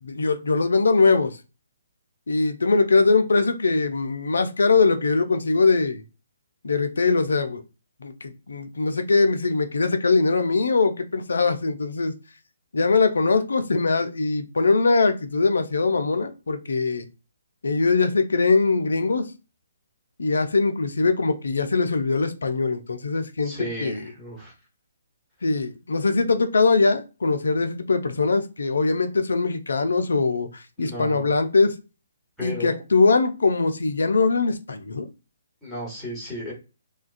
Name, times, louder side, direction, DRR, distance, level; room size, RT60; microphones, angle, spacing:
voice 1, 0.0-1.4 2.3-6.0 6.6-7.6 8.0-12.1 12.7-17.0 17.6-19.3 20.2-24.1 25.4-31.8 32.4-35.1, left 4 dB, 65° left, 8 dB, 0.4 m, -22 dB
voice 2, 23.4-24.5 30.8-31.3 32.4-32.8 35.6-36.5, equal, ahead, -8 dB, 1.2 m, -34 dB
2.3 x 2.2 x 2.4 m, 0.30 s
figure-of-eight pair, 135°, 0 cm